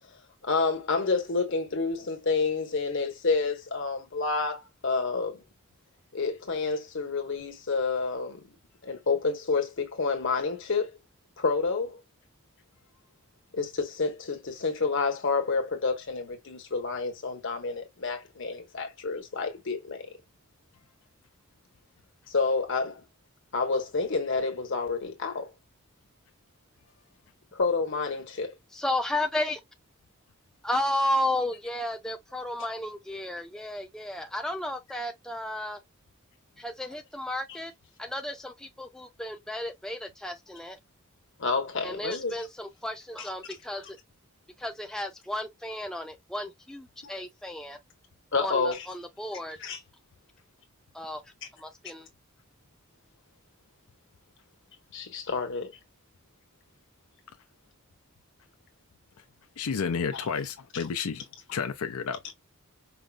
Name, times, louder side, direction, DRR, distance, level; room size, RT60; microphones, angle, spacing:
voice 1, 0.4-5.4 6.1-8.4 8.8-10.9 11.4-12.0 13.5-20.1 22.3-23.0 23.5-25.5 27.5-28.5 41.4-42.4 43.2-43.3 47.0-47.1 48.3-48.8 49.6-49.8 54.9-55.7 60.1-60.3 61.5-61.6, left 4 dB, 60° left, 1.3 m, -29 dB
voice 2, 28.7-29.6 30.6-35.8 36.6-37.7 38.0-40.8 41.8-44.0 44.6-47.8 48.4-49.6 50.9-51.2 51.6-52.1, left 1 dB, 5° left, 0.3 m, -33 dB
voice 3, 59.6-61.3 61.5-62.2, left 6 dB, 85° left, 0.5 m, -31 dB
5.2 x 2.0 x 2.4 m
head